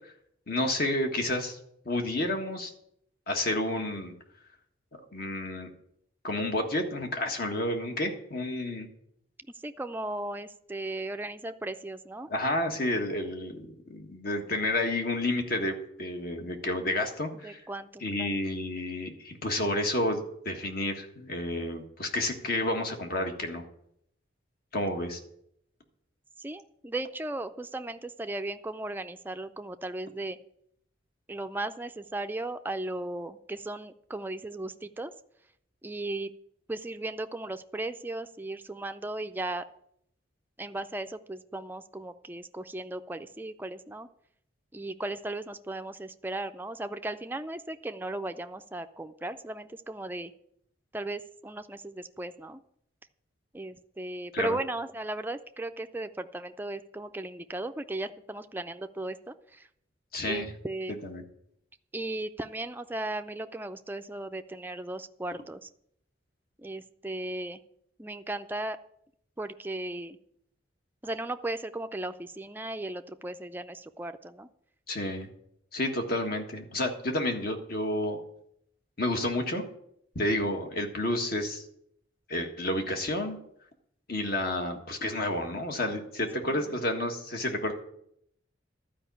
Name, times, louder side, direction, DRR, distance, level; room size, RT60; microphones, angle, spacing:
voice 1, 0.5-1.6 1.8-2.7 3.3-4.1 5.1-5.7 6.2-8.9 12.3-17.6 18.0-23.6 24.7-25.2 54.3-54.6 60.1-60.5 61.0-61.2 74.9-75.3 75.7-78.2 79.0-79.6 80.1-81.6 82.3-83.4 84.1-87.7, left 1 dB, 50° left, 4 dB, 1.6 m, -30 dB
voice 2, 9.5-12.3 17.4-18.3 26.4-30.4 31.3-35.1 35.8-36.3 36.7-39.7 40.6-44.1 44.7-50.3 50.9-52.6 53.5-59.7 60.2-61.0 61.9-65.7 66.6-67.6 68.0-68.8 69.4-70.2 71.0-74.5 86.4-86.7, right 2 dB, 10° right, 8 dB, 0.4 m, -36 dB
12.0 x 5.1 x 8.4 m, 0.73 s
head